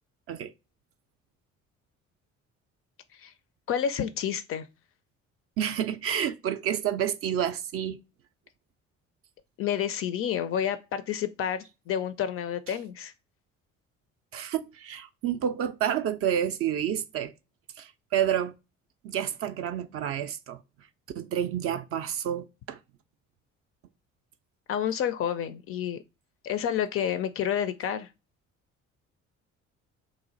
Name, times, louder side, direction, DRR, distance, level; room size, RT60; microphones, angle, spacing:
voice 1, 3.7-4.7 9.6-13.1 24.7-26.0 26.4-28.1, left 9 dB, 35° left, 0.4 m, -29 dB
voice 2, 5.6-8.0 14.3-17.3 17.8-18.5 19.0-20.6 21.2-22.8, right 9 dB, 40° right, 0.4 m, -29 dB
3.1 x 2.4 x 3.7 m
figure-of-eight pair, 50°, 39 cm